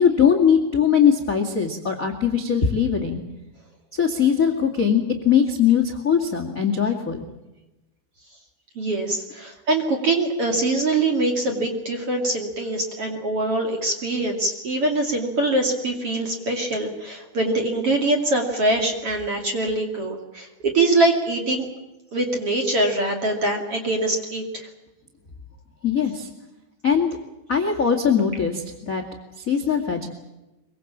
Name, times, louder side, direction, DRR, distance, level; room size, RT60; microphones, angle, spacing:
voice 1, 0.0-3.2 3.9-7.2 25.8-26.3 26.8-27.1 27.5-29.0 29.4-30.1, left 7 dB, 35° left, 5 dB, 1.3 m, -20 dB
voice 2, 8.8-21.7 22.1-24.7, right 2 dB, 35° right, 2 dB, 2.8 m, -23 dB
23.5 x 23.5 x 7.4 m, 1.0 s
omnidirectional pair, 5.4 m